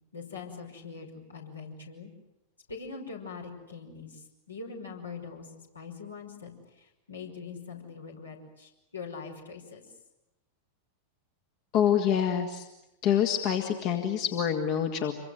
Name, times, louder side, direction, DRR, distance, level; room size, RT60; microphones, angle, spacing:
voice 1, 0.1-2.1 2.7-5.5 5.7-6.5 6.8-9.8, left 5 dB, 75° left, 1 dB, 5.6 m, -42 dB
voice 2, 11.7-12.7 13.0-15.1, left 9 dB, 40° left, 5 dB, 1.9 m, -26 dB
27.0 x 24.0 x 7.9 m, 0.93 s
figure-of-eight pair, 90°, 0 cm